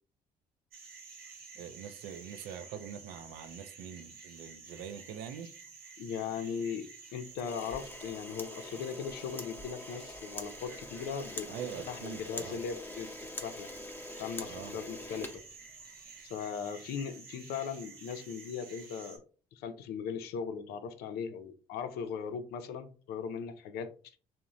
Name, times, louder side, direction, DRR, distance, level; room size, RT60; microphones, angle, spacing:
sound 1, 0.7-19.2, right 5 dB, 65° right, 0.9 m, -51 dB
voice 1, 1.6-5.5 11.5-12.6 14.5-14.7, right 8 dB, 85° right, 0.4 m, -43 dB
voice 2, 6.0-11.5 11.9-13.1 13.4-13.7 14.2-15.4 16.2-19.2 19.5-24.2, left 7 dB, 75° left, 0.4 m, -38 dB
Camera, 7.3-16.1, left 2 dB, 15° left, 0.6 m, -44 dB
2.9 x 2.0 x 2.5 m
supercardioid pair, 65°, 16 cm